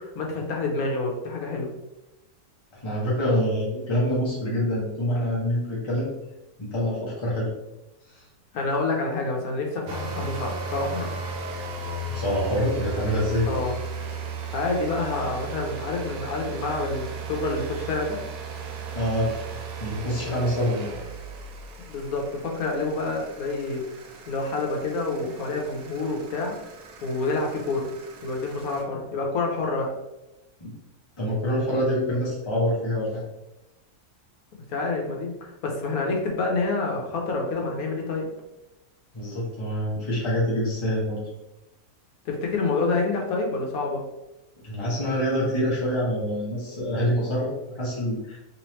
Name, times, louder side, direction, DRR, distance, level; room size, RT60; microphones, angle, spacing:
voice 1, 0.0-1.7 8.5-11.1 13.5-13.7 14.5-18.2 21.9-23.8 24.3-26.6 27.0-27.9 28.2-29.9 34.7-38.3 42.2-44.0, left 3 dB, 75° left, 0 dB, 1.2 m, -28 dB
voice 2, 2.7-6.1 6.6-7.5 8.1-8.2 12.1-13.5 18.9-19.5 19.8-20.9 30.6-30.7 31.2-33.2 39.1-41.2 44.6-48.4, equal, 25° left, -6 dB, 0.9 m, -26 dB
sound 1, 9.9-28.8, right 4 dB, 75° right, 1.1 m, -36 dB
3.4 x 3.1 x 3.0 m, 0.96 s
omnidirectional pair, 1.6 m